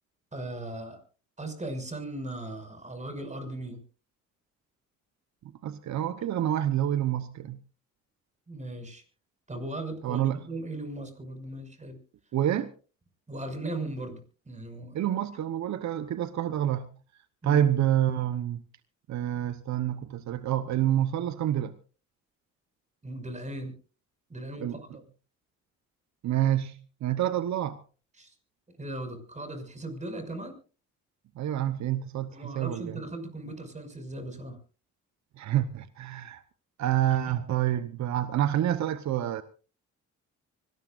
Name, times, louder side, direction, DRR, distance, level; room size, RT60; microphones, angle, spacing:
voice 1, 0.3-1.0 1.4-3.8 8.5-9.0 9.5-12.0 13.3-14.9 17.4-17.6 23.0-23.7 24.3-25.0 28.2-28.3 28.8-30.6 32.3-34.6 37.3-37.4, right 1 dB, 25° right, 5.9 m, -38 dB
voice 2, 5.6-7.6 10.0-10.5 12.3-12.7 14.9-16.9 17.4-18.6 19.1-21.7 24.6-24.7 26.2-27.8 31.4-33.0 35.4-36.4 36.8-39.4, right 11 dB, 70° right, 1.0 m, -28 dB
24.5 x 18.5 x 2.5 m
cardioid pair, 90°, 30 cm